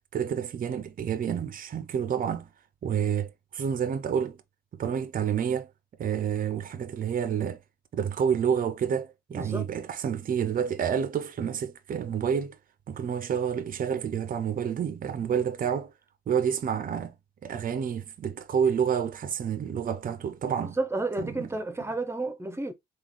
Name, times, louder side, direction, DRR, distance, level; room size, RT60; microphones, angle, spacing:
voice 1, 0.1-2.5 2.8-4.4 4.8-5.7 6.0-7.6 7.9-12.6 12.9-15.9 16.3-17.1 17.4-20.8 21.2-21.5, right 8 dB, 45° right, 0.6 m, -29 dB
voice 2, 9.3-9.7 20.6-22.7, right 2 dB, 15° right, 0.8 m, -31 dB
3.7 x 2.4 x 3.1 m
cardioid pair, 90°, 20 cm